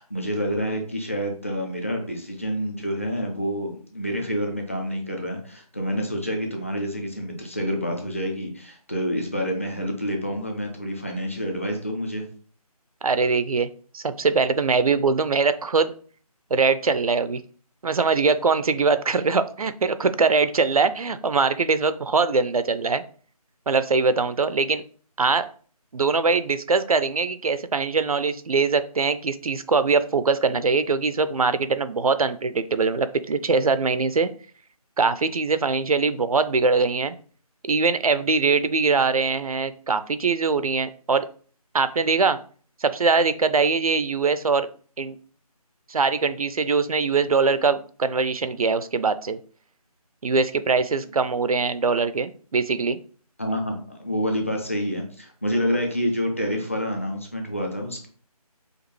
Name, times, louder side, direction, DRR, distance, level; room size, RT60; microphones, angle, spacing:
voice 1, 0.0-12.2 53.4-58.1, equal, 20° left, 2 dB, 0.6 m, -28 dB
voice 2, 13.0-15.9 16.5-17.4 17.8-23.0 23.7-24.8 25.2-25.5 25.9-34.3 35.0-37.2 37.6-41.3 41.7-42.4 42.8-44.7 45.0-45.2 45.9-49.4 50.2-53.0, right 4 dB, 65° right, 12 dB, 0.4 m, -22 dB
5.0 x 2.4 x 3.1 m, 0.43 s
figure-of-eight pair, 170°, 20 cm